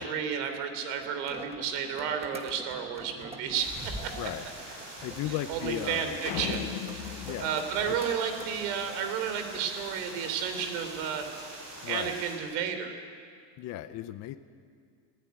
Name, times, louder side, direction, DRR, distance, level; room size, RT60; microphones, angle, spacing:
voice 1, 0.0-4.3 5.5-7.0 7.4-11.3 11.9-12.9, right 7 dB, 75° right, 7 dB, 3.3 m, -32 dB
sound 1, 1.0-11.1, right 2 dB, 10° right, 1.3 m, -46 dB
sound 2, 3.5-12.4, right 1 dB, 40° right, 6.7 m, -45 dB
voice 2, 5.0-6.2 7.2-7.5 7.8-8.0 11.8-12.1 13.6-14.4, left 13 dB, 35° left, 10 dB, 0.5 m, -35 dB
sound 3, 6.3-8.7, left 15 dB, 70° left, 0.9 m, -38 dB
21.0 x 16.0 x 9.4 m, 2.1 s
cardioid pair, 165°, 48 cm